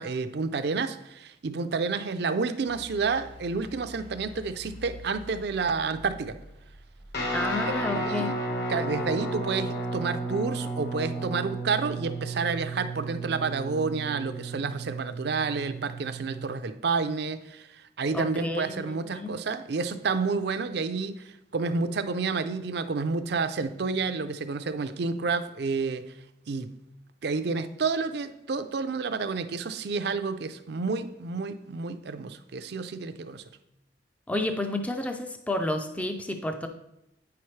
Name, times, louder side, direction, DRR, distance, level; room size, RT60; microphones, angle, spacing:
voice 1, 0.0-6.4 7.6-8.3 8.7-21.2 21.5-26.1 26.5-26.7 27.2-33.4, right 4 dB, 60° right, 11 dB, 0.5 m, -30 dB
sound 1, 2.7-9.8, left 1 dB, 30° left, 0.9 m, -48 dB
Guitar, 7.1-16.5, right 2 dB, 60° left, 1.4 m, -33 dB
voice 2, 7.3-8.3 18.1-19.4 34.3-36.7, left 1 dB, 10° left, 6 dB, 0.4 m, -30 dB
8.8 x 5.8 x 3.2 m, 0.84 s
head